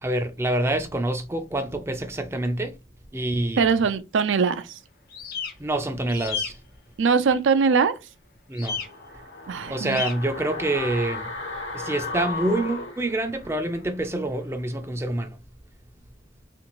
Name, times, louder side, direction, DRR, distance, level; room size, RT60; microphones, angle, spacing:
voice 1, 0.0-2.7 3.1-3.7 5.6-6.6 8.5-8.8 9.7-11.3 11.7-15.4, right 1 dB, 15° right, 0.3 m, -26 dB
voice 2, 3.6-4.8 7.0-7.9 9.5-10.0, right 5 dB, 80° right, 0.4 m, -21 dB
sound 1, 5.1-5.5 6.1-6.5 8.6-8.9 9.9-10.1, left 6 dB, 50° left, 0.6 m, -31 dB
sound 2, 8.7-13.8 14.1-14.2, left 3 dB, 75° left, 1.1 m, -35 dB
3.6 x 2.5 x 2.9 m
head